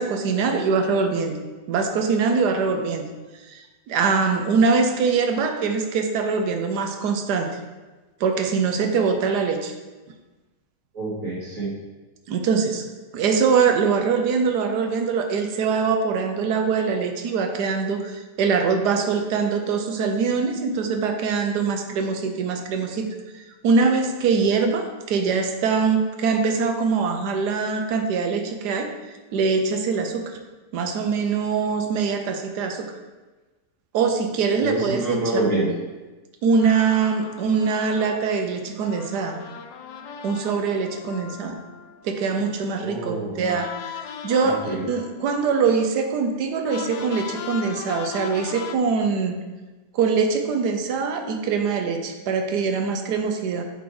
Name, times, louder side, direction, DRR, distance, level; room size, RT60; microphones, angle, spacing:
voice 1, 0.0-1.4 1.7-3.0 3.5-7.5 8.2-9.7 12.3-12.8 13.1-23.1 23.3-28.9 29.3-30.2 30.7-32.9 33.9-35.2 36.4-39.4 40.2-41.6 42.0-49.3 49.9-53.6, right 5 dB, 80° right, 5 dB, 1.3 m, -23 dB
voice 2, 10.9-11.7 34.5-35.7 42.8-43.5 44.4-44.8, right 2 dB, 50° right, -7 dB, 2.4 m, -27 dB
sound 1, 36.5-42.9 43.4-48.8, left 8 dB, 90° left, 1.2 m, -39 dB
7.8 x 3.5 x 4.8 m, 1.2 s
omnidirectional pair, 1.7 m